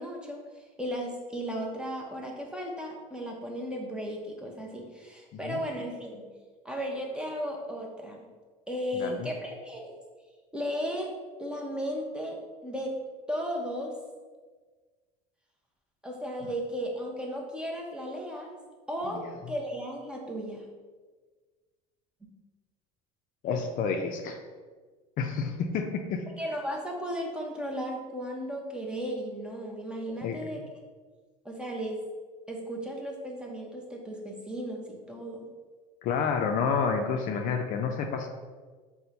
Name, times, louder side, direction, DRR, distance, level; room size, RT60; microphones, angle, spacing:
voice 1, 0.0-6.3 6.6-8.3 8.7-9.9 10.5-13.0 13.3-14.0 16.0-18.6 18.9-20.6 22.2-22.3 26.4-30.6 31.4-32.0 32.5-35.5, equal, 5° right, -1 dB, 0.6 m, -35 dB
voice 2, 8.9-9.3 19.1-19.3 23.4-24.4 25.2-26.3 30.2-30.4 36.0-38.3, left 5 dB, 55° left, 4 dB, 0.4 m, -29 dB
4.3 x 2.1 x 3.8 m, 1.4 s
supercardioid pair, 110°, 17 cm